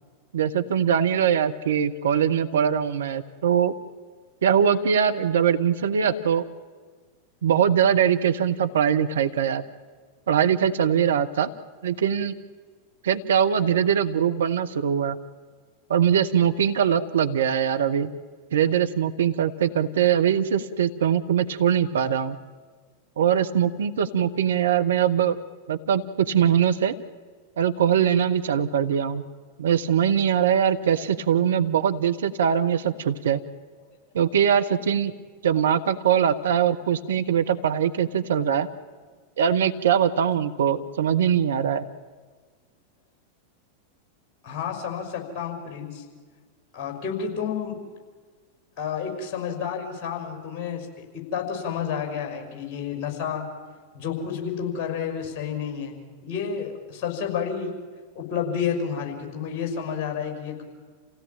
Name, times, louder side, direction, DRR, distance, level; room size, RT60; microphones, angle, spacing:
voice 1, 0.3-3.7 4.4-6.4 7.4-9.6 10.3-11.5 11.8-12.4 13.0-15.2 15.9-18.1 18.5-22.4 23.2-25.4 25.7-26.9 27.6-29.2 29.6-33.4 34.1-35.1 35.4-38.7 39.4-41.8, right 8 dB, 65° right, 8 dB, 1.1 m, -22 dB
voice 2, 44.4-46.0 46.7-47.8 48.8-50.9 51.1-53.5 53.9-57.7 58.1-60.6, left 7 dB, 35° left, 3 dB, 6.0 m, -30 dB
28.5 x 16.5 x 9.0 m, 1.5 s
figure-of-eight pair, 90°, 0 cm